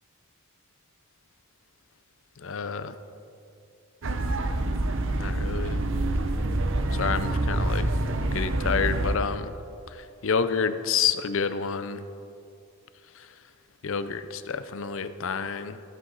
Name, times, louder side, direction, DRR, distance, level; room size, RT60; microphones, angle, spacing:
voice 1, 2.4-3.0 5.1-5.8 6.9-9.5 9.9-12.1 13.2-13.3 13.8-15.8, left 6 dB, 60° left, 12 dB, 0.6 m, -29 dB
sound 1, 4.0-9.2, right 2 dB, 55° right, 0.7 m, -26 dB
15.0 x 9.3 x 4.1 m, 2.6 s
head